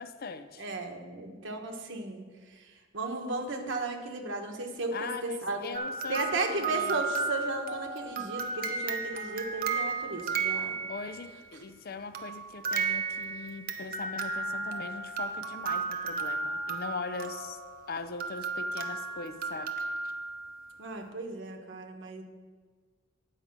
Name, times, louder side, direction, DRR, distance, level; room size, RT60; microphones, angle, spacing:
voice 1, 0.0-0.7 4.9-7.0 10.9-17.6 17.9-19.7, left 4 dB, 50° left, 10 dB, 0.5 m, -40 dB
voice 2, 0.6-2.2 2.5-5.7 6.1-10.8 20.8-22.2, right 2 dB, 65° right, 3 dB, 1.3 m, -35 dB
sound 1, 5.7-11.3 12.1-20.7, right 4 dB, 45° right, 0.8 m, -34 dB
10.0 x 5.1 x 7.3 m, 1.5 s
head